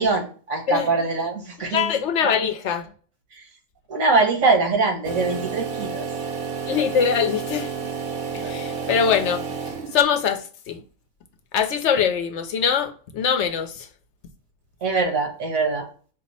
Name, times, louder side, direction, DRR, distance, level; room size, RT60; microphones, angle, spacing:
voice 1, 0.0-1.9 2.2-2.3 3.3-3.4 3.9-6.1 8.4-8.5 8.8-8.9 14.8-15.9, right 3 dB, 85° right, 1.7 m, -23 dB
voice 2, 1.6-2.9 6.7-7.9 8.3-9.6 9.9-10.8 11.5-13.9, left 7 dB, 65° left, 0.8 m, -23 dB
sound 1, 5.0-10.2, right 5 dB, 55° right, 0.7 m, -31 dB
5.1 x 2.0 x 4.0 m
omnidirectional pair, 1.4 m